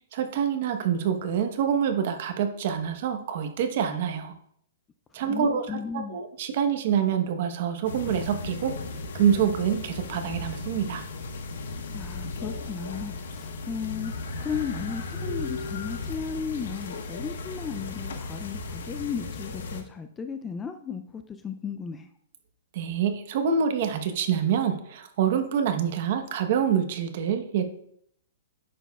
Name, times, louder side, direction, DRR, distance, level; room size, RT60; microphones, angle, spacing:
voice 1, 0.2-4.3 5.1-8.7 9.1-11.0 22.7-27.6, right 8 dB, 45° right, 7 dB, 0.9 m, -26 dB
voice 2, 5.3-6.2 11.9-22.1, left 6 dB, 10° left, 8 dB, 0.3 m, -35 dB
sound 1, 7.8-19.8, left 3 dB, 75° left, 1.2 m, -36 dB
9.8 x 7.1 x 2.3 m, 0.67 s
hypercardioid pair, 165°, 0 cm